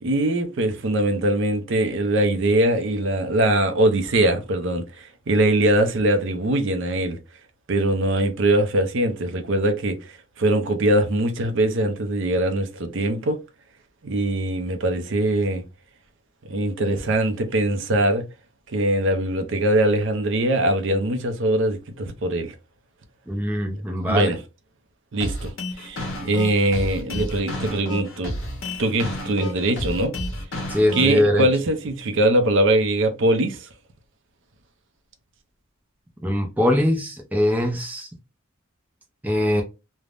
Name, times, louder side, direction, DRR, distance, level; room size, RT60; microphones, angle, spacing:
voice 1, 0.0-7.2 7.7-9.9 10.4-13.4 14.0-15.6 16.4-18.2 18.7-22.5 24.1-24.4 25.1-25.5 25.8-28.3 28.8-30.1 30.9-33.6, right 1 dB, 60° right, 0.5 m, -22 dB
voice 2, 23.3-24.3 30.7-31.5 36.2-38.1 39.2-39.6, left 1 dB, 10° right, 0.5 m, -22 dB
sound 1, 25.2-31.2, left 1 dB, 70° left, 1.1 m, -31 dB
3.3 x 2.0 x 2.4 m
head